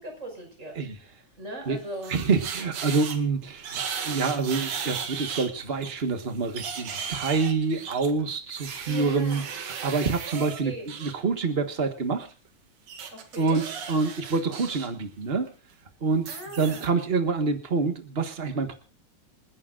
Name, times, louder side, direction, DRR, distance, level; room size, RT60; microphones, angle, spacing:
voice 1, 0.0-2.2 8.8-9.6 10.4-10.9 13.1-13.6 16.3-17.0, right 1 dB, 25° right, 2 dB, 6.1 m, -40 dB
sound 1, 1.7-3.2 3.6-5.5 5.8-11.1 12.9-14.9 15.2-15.5 16.2-16.9, right 7 dB, 85° right, 3.4 m, -36 dB
voice 2, 2.1-12.3 13.4-15.5 16.0-18.8, right 4 dB, 45° right, 6 dB, 0.7 m, -27 dB
28.5 x 11.0 x 2.5 m, 0.34 s
omnidirectional pair, 3.4 m